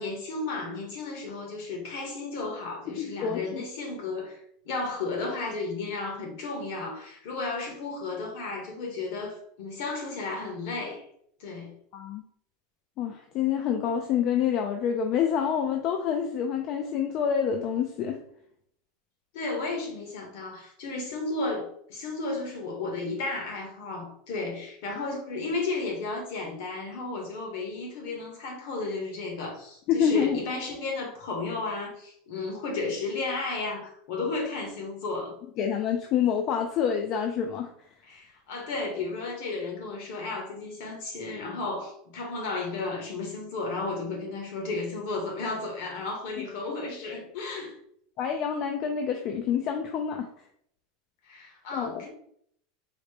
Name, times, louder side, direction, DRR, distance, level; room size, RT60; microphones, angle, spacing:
voice 1, 0.0-11.0 11.4-11.7 19.3-35.4 38.0-47.7 51.3-52.1, left 3 dB, 60° left, 1 dB, 1.1 m, -33 dB
voice 2, 2.9-3.7 11.9-12.2 13.0-18.2 29.9-30.4 35.6-37.7 46.4-46.5 48.2-50.3 51.7-52.0, left 8 dB, 40° left, 4 dB, 0.3 m, -27 dB
4.0 x 2.1 x 3.3 m, 0.68 s
supercardioid pair, 165°, 0 cm